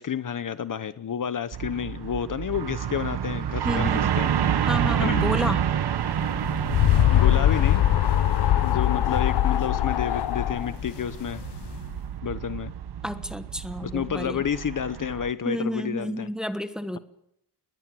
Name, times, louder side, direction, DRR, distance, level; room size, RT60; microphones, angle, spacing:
voice 1, 0.0-3.9 4.2-4.3 5.0-5.3 7.1-7.8 8.6-11.4 12.2-12.7 13.8-16.3, left 8 dB, 50° left, 13 dB, 0.9 m, -30 dB
sound 1, 1.5-15.3, right 9 dB, 70° right, 1.3 m, -29 dB
voice 2, 3.6-4.1 4.6-5.6 13.0-14.5 15.4-17.0, equal, ahead, 9 dB, 1.3 m, -30 dB
sound 2, 6.2-11.8, left 12 dB, 75° left, 0.7 m, -22 dB
21.0 x 18.5 x 7.7 m, 0.77 s
wide cardioid pair, 150°, 41 cm